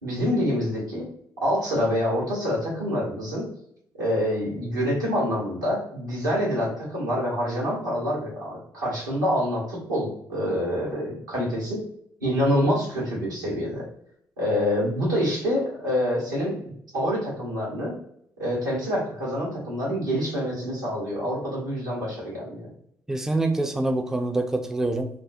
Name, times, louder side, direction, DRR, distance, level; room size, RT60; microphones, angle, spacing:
voice 1, 0.0-1.1 1.4-3.5 4.0-11.8 12.2-13.9 14.4-17.9 18.4-22.7, equal, 90° right, -6 dB, 0.8 m, -26 dB
voice 2, 23.1-25.1, right 2 dB, 5° right, 5 dB, 0.4 m, -25 dB
2.4 x 2.0 x 2.6 m, 0.70 s
figure-of-eight pair, 45°, 10 cm